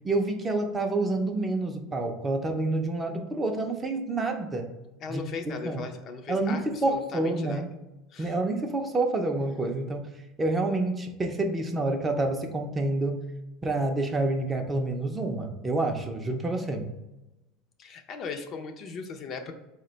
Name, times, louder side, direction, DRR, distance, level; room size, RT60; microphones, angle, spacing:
voice 1, 0.0-4.7 5.1-5.2 5.6-5.8 6.3-7.7 8.2-10.1 10.4-13.2 13.6-16.9, right 2 dB, 15° right, 4 dB, 0.4 m, -28 dB
voice 2, 5.0-7.6 8.1-8.4 17.8-19.5, left 5 dB, 40° left, 5 dB, 0.4 m, -38 dB
4.0 x 2.1 x 3.8 m, 0.99 s
supercardioid pair, 130°, 0 cm